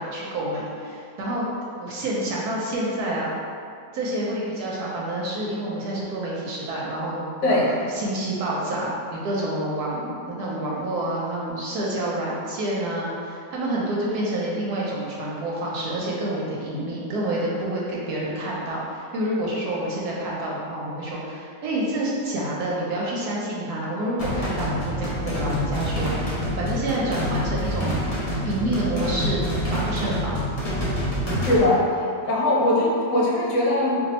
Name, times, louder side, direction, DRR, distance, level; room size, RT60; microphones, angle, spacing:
voice 1, 0.0-1.5 1.8-3.3 3.9-28.0 28.4-29.4 29.7-30.5, right 1 dB, 70° right, -5 dB, 1.0 m, -28 dB
sound 1, 24.2-31.6, equal, 40° left, 0.5 m, -27 dB
voice 2, 31.4-31.8 32.3-34.0, left 1 dB, 75° left, -6 dB, 1.3 m, -20 dB
2.7 x 2.6 x 4.1 m, 2.4 s
omnidirectional pair, 1.9 m